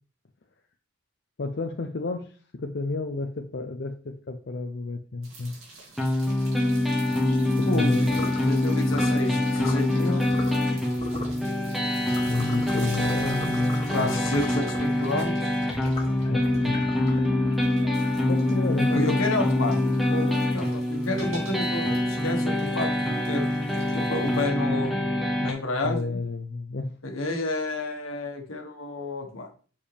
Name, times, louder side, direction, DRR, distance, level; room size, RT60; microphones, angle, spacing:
voice 1, 1.4-5.5 7.6-8.1 12.3-14.2 16.3-16.9 17.9-19.2 25.8-27.0, left 3 dB, 55° left, 4 dB, 0.5 m, -31 dB
sound 1, 5.2-24.4, right 2 dB, 80° right, 2.7 m, -47 dB
sound 2, 6.0-25.5, left 1 dB, ahead, 1.1 m, -25 dB
voice 2, 7.6-10.3 13.9-15.3 18.9-23.4 23.9-24.9 25.3-26.2 27.0-29.5, left 2 dB, 80° left, 3 dB, 1.4 m, -30 dB
sound 3, 8.1-8.4 8.9-9.2 9.5-9.8 10.3-10.7 11.0-11.4 12.1-15.0 15.6-18.4, left 2 dB, 25° left, 2.1 m, -40 dB
6.8 x 5.1 x 3.4 m, 0.40 s
head